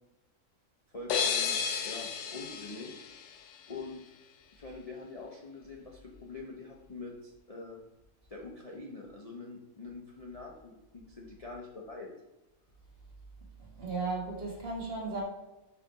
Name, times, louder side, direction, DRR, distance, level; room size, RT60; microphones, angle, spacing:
voice 1, 0.9-1.6 1.8-3.0 3.7-4.0 4.5-7.8 8.3-12.1, left 3 dB, 35° left, -2 dB, 0.6 m, -44 dB
sound 1, 1.1-3.9, left 6 dB, 65° left, 0.8 m, -33 dB
voice 2, 13.6-15.2, right 3 dB, 45° right, -2 dB, 1.5 m, -35 dB
5.5 x 3.6 x 5.0 m, 1.0 s
omnidirectional pair, 1.5 m